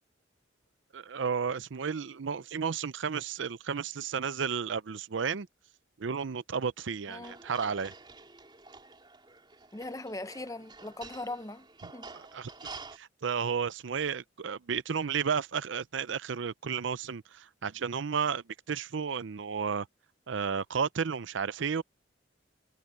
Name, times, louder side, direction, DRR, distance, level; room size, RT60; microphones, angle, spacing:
voice 1, 0.9-5.5 6.0-7.9 11.8-12.5 12.9-19.9 20.3-21.8, right 6 dB, 75° right, 0.5 m, -33 dB
voice 2, 7.1-7.4 9.7-12.1, left 2 dB, 15° left, 0.7 m, -40 dB
sound 1, 7.2-13.0, right 4 dB, 25° right, 4.4 m, -48 dB
head